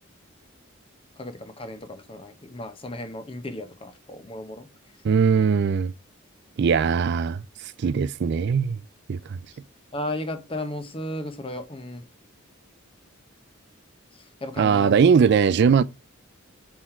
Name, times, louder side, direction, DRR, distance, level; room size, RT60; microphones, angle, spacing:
voice 1, 1.2-4.7 9.9-12.0 14.1-14.9, left 1 dB, 25° left, 0.9 m, -35 dB
voice 2, 5.0-5.9 6.6-8.8 9.1-9.4 14.6-15.8, right 6 dB, 55° right, 0.3 m, -20 dB
6.3 x 3.8 x 4.3 m
head